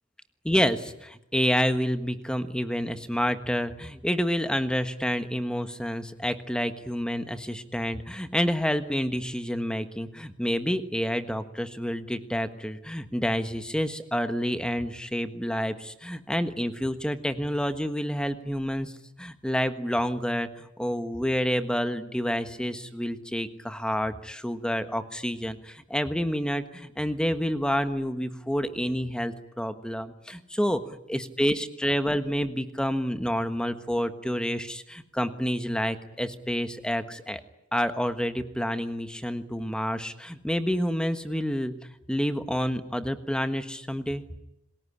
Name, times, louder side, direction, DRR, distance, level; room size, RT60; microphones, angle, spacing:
voice 1, 0.4-18.9 19.2-37.4 37.7-41.7 42.1-44.2, equal, 5° left, 9 dB, 1.4 m, -28 dB
28.0 x 20.5 x 9.7 m, 0.81 s
head